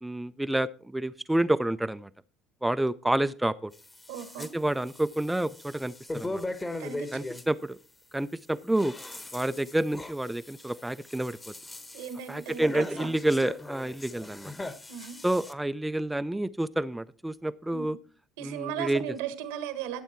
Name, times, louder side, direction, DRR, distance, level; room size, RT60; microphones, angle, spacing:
voice 1, 0.0-2.1 2.6-3.7 4.4-6.4 7.1-7.8 8.1-8.9 9.3-11.5 12.3-14.5 15.2-18.0 18.4-19.1, right 1 dB, 10° right, 0.4 m, -29 dB
sound 1, 3.7-4.5 4.9-7.5 8.5-15.5, left 2 dB, 20° left, 1.2 m, -40 dB
voice 2, 4.1-4.5 6.8-7.2 11.9-13.1 14.9-15.2 17.7-17.9 18.4-20.0, right 9 dB, 85° right, 1.4 m, -37 dB
12.5 x 7.1 x 4.4 m
supercardioid pair, 80°, 0 cm